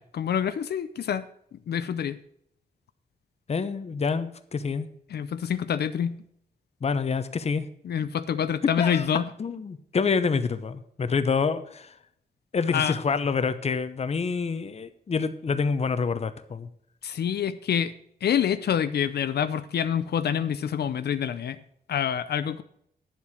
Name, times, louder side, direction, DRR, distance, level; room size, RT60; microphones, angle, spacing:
voice 1, 0.1-1.3 1.5-2.2 5.1-6.2 7.8-9.3 12.7-12.9 17.0-17.9 18.2-21.6 21.9-22.6, left 8 dB, 85° left, 12 dB, 0.6 m, -27 dB
voice 2, 3.5-4.9 6.8-7.7 8.8-9.1 9.4-12.0 12.5-16.7, left 5 dB, 40° left, 11 dB, 0.8 m, -27 dB
10.5 x 7.4 x 6.2 m, 0.69 s
wide cardioid pair, 160°, 16 cm